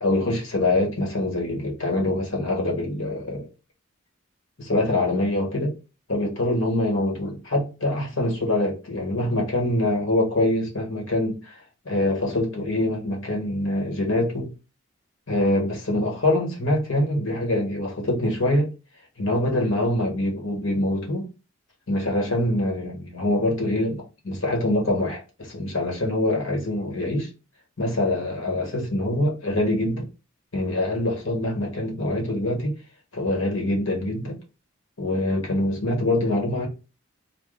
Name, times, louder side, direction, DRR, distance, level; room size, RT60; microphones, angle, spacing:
voice 1, 0.0-3.5 4.6-5.7 6.1-14.5 15.3-18.7 19.2-21.3 21.9-27.3 27.8-30.1 30.5-32.8 33.1-34.4 35.0-36.7, left 1 dB, 65° left, 1.3 m, -24 dB
3.5 x 2.2 x 3.7 m
head